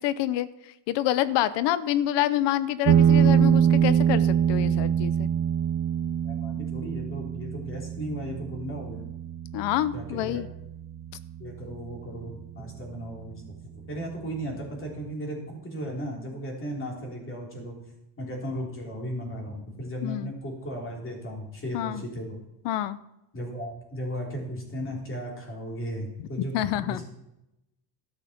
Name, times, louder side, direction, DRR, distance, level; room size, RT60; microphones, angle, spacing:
voice 1, 0.0-5.3 9.5-10.5 20.0-20.3 21.7-22.0 22.6-23.0 26.5-27.0, left 13 dB, 70° left, 16 dB, 0.7 m, -27 dB
sound 1, 2.8-11.9, right 8 dB, 40° right, 0.5 m, -24 dB
voice 2, 6.2-9.1 9.9-10.4 11.4-13.6 13.8-17.8 18.2-22.4 23.3-27.1, equal, 30° left, 0 dB, 3.3 m, -36 dB
13.0 x 6.6 x 5.8 m, 0.88 s
cardioid pair, 140°, 44 cm